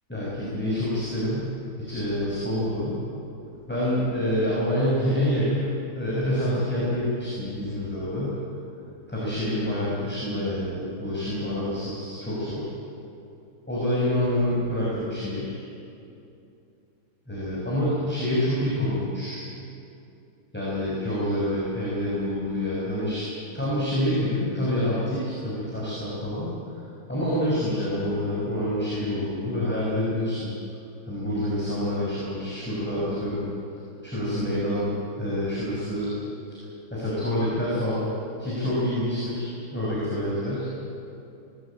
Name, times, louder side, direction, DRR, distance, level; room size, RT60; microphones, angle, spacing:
voice 1, 0.1-3.0 3.7-8.3 9.1-12.7 13.7-15.6 17.3-19.5 20.5-23.3 23.5-26.5 27.1-30.5 31.1-33.4 34.0-36.1 36.9-38.1 38.4-40.8, left 1 dB, 5° left, -7 dB, 6.0 m, -27 dB
22.0 x 19.5 x 8.9 m, 2.7 s
omnidirectional pair, 2.2 m